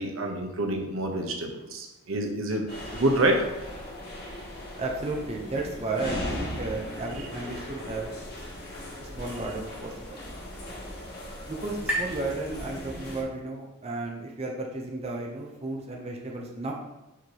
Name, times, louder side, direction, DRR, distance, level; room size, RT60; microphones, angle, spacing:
voice 1, 0.0-3.4, right 1 dB, 75° right, 3 dB, 0.9 m, -27 dB
sound 1, 2.7-13.2, left 1 dB, 50° left, 2.0 m, -38 dB
voice 2, 4.8-8.1 9.0-10.2 11.5-16.7, right 2 dB, 30° right, 0 dB, 0.7 m, -33 dB
sound 2, 9.5-13.3, equal, 10° right, 1.2 m, -38 dB
5.9 x 5.8 x 2.9 m, 0.98 s
head